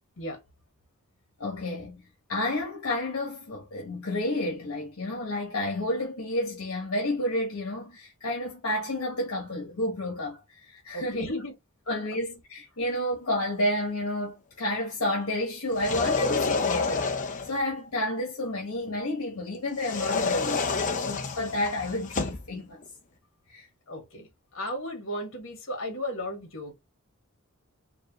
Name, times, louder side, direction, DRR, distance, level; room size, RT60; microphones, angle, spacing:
voice 1, 1.4-2.0 2.3-11.3 11.9-17.1 17.4-22.8 23.5-23.6, left 1 dB, 80° left, 1.2 m, -30 dB
voice 2, 10.9-11.5 23.9-26.7, left 1 dB, 60° left, 1.7 m, -35 dB
sound 1, 15.7-17.6 19.8-22.5, left 4 dB, 35° left, 0.7 m, -28 dB
4.6 x 2.5 x 3.0 m
head